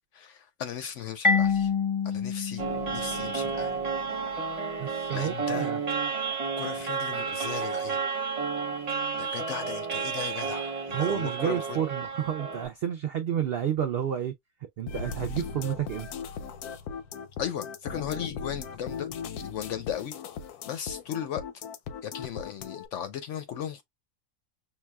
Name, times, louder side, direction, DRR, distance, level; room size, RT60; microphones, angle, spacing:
voice 1, 0.1-1.7 2.0-3.8 5.1-5.7 6.6-8.0 9.2-11.8 17.4-19.1 19.4-20.2 20.7-21.4 22.0-23.8, left 9 dB, 65° left, 0.8 m, -36 dB
Marimba xylophone, 1.2-3.9, left 5 dB, 30° left, 0.6 m, -27 dB
sound 1, 2.6-12.7, right 5 dB, 35° right, 0.7 m, -31 dB
voice 2, 4.8-5.8 10.9-14.3 14.8-16.1, right 9 dB, 80° right, 0.5 m, -30 dB
sound 2, 14.9-22.9, left 6 dB, 85° left, 1.1 m, -38 dB
5.7 x 2.3 x 2.3 m
omnidirectional pair, 1.6 m